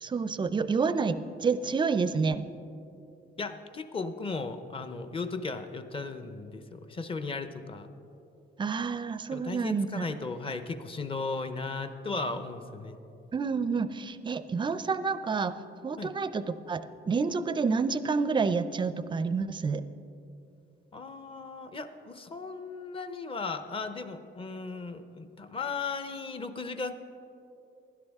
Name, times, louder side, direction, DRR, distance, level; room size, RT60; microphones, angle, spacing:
voice 1, 0.0-2.5 8.6-10.0 13.3-15.5 15.8-19.9, right 5 dB, 25° right, 13 dB, 0.4 m, -29 dB
voice 2, 3.4-7.9 9.3-13.0 16.0-16.1 20.9-26.9, left 4 dB, 25° left, 10 dB, 0.6 m, -36 dB
16.0 x 11.5 x 3.5 m, 2.7 s
cardioid pair, 135°, 20 cm